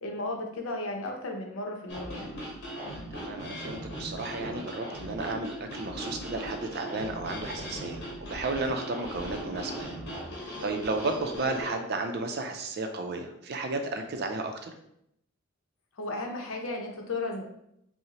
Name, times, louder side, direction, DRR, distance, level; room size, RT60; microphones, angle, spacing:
voice 1, 0.0-2.3 16.0-17.4, left 2 dB, 75° left, 2 dB, 0.7 m, -34 dB
sound 1, 1.9-11.7, equal, 50° left, 1.1 m, -39 dB
voice 2, 3.1-10.0 10.6-14.7, right 3 dB, 50° right, 5 dB, 0.5 m, -33 dB
5.5 x 2.1 x 2.9 m, 0.77 s
head